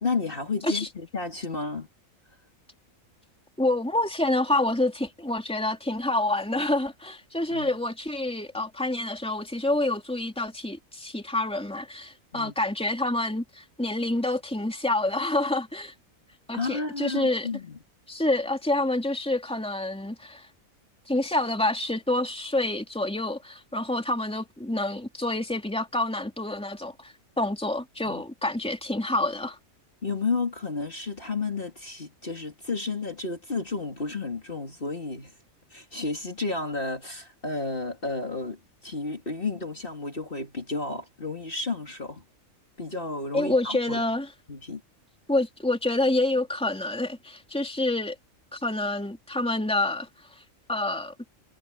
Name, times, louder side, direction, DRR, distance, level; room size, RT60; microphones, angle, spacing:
voice 1, 0.0-1.9 7.5-7.7 12.3-12.5 16.5-17.8 28.0-28.2 30.0-35.3 35.7-42.2 42.8-44.0 44.5-44.8, left 3 dB, 40° left, 2.9 m, -32 dB
voice 2, 3.6-15.9 16.5-17.5 18.1-20.5 21.1-29.6 43.3-44.3 45.3-48.1 48.5-50.1 50.7-51.1, left 2 dB, 5° left, 3.1 m, -27 dB
omnidirectional pair, 1.4 m